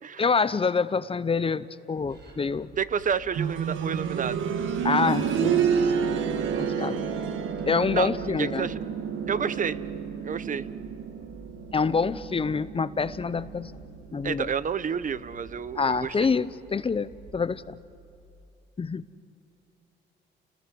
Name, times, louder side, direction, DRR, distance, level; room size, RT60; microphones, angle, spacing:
voice 1, 0.2-2.7 4.8-5.9 6.6-7.0 7.7-8.7 11.7-13.7 14.1-14.5 15.8-17.8 18.8-19.0, left 5 dB, 30° left, 16 dB, 0.7 m, -26 dB
sound 1, 2.0-18.3, right 2 dB, 55° right, 6.6 m, -49 dB
voice 2, 2.8-4.4 7.9-8.1 8.4-8.8 9.3-9.8 10.2-10.6 14.2-16.2, right 7 dB, 40° right, 16 dB, 0.8 m, -29 dB
sound 2, 3.3-14.1 14.4-14.5 15.4-15.5, right 7 dB, 80° right, 1.5 m, -29 dB
30.0 x 19.5 x 7.8 m, 2.7 s
cardioid pair, 90°, 20 cm